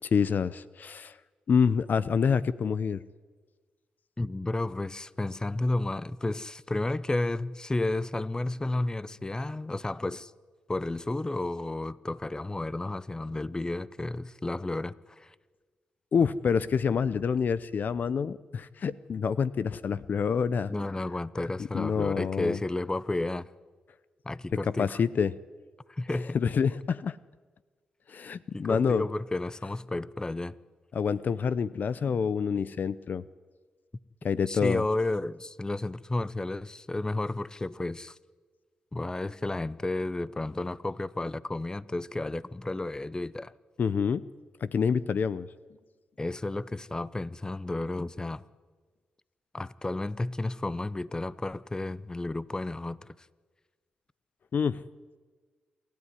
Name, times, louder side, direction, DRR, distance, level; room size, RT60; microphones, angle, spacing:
voice 1, 0.0-1.2 1.5-3.0 16.1-20.7 21.7-22.6 24.8-25.3 26.3-27.2 28.1-29.0 30.9-33.2 34.2-34.8 43.8-44.2 44.6-45.5 54.5-54.8, left 6 dB, 60° left, 0.7 m, -27 dB
voice 2, 4.2-10.3 10.7-15.3 20.7-23.5 24.2-25.0 25.9-26.4 28.5-30.6 34.5-38.2 38.9-43.5 46.2-48.4 49.5-53.0, left 2 dB, 20° left, 0.8 m, -32 dB
28.0 x 13.0 x 9.8 m
supercardioid pair, 50°, 3 cm